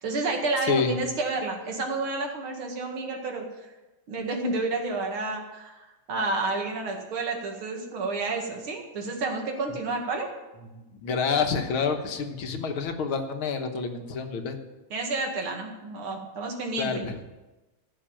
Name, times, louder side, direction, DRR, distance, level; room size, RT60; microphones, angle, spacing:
voice 1, 0.0-3.4 4.1-10.3 14.9-17.1, right 3 dB, 85° right, 1 dB, 2.9 m, -30 dB
voice 2, 11.0-14.6 16.8-17.2, left 5 dB, 80° left, 5 dB, 2.1 m, -28 dB
15.5 x 6.3 x 8.9 m, 1.1 s
omnidirectional pair, 2.3 m